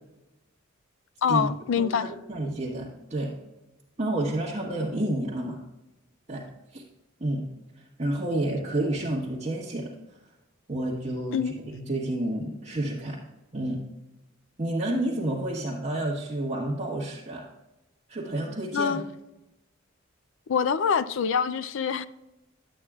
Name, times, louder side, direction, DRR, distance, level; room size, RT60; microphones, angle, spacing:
voice 1, 1.2-2.1 11.3-11.5 18.7-19.1 20.5-22.1, left 6 dB, 65° left, 0.4 m, -25 dB
voice 2, 1.8-3.4 4.0-5.6 6.3-6.4 6.7-6.8 7.2-7.4 8.0-9.9 10.7-11.4 11.7-13.2 13.5-13.8 14.6-17.4 18.1-19.0, right 1 dB, 35° right, 1.3 m, -29 dB
11.0 x 8.4 x 2.4 m
head